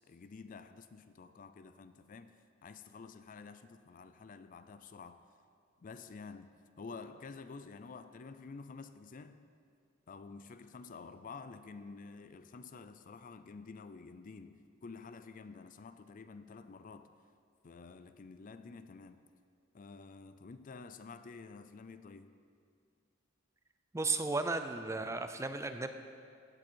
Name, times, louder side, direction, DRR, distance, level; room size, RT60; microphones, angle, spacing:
voice 1, 0.0-5.2 5.8-9.5 10.1-17.1 17.6-19.2 19.7-22.3, left 4 dB, 40° left, 11 dB, 0.4 m, -50 dB
voice 2, 23.9-25.9, right 3 dB, 15° right, 8 dB, 0.5 m, -34 dB
15.5 x 8.7 x 4.5 m, 2.3 s
head